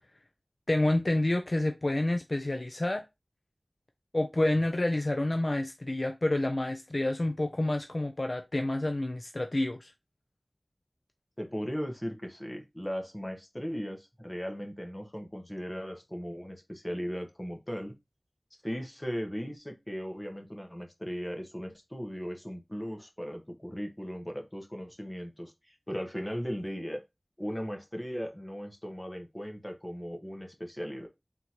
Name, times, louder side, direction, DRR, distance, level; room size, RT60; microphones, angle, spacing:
voice 1, 0.7-3.0 4.1-9.9, left 1 dB, 50° left, 0.4 m, -28 dB
voice 2, 11.4-17.9 18.6-27.0 27.4-31.1, equal, 20° left, 1.1 m, -37 dB
3.9 x 3.6 x 3.0 m
wide cardioid pair, 50°, 0 cm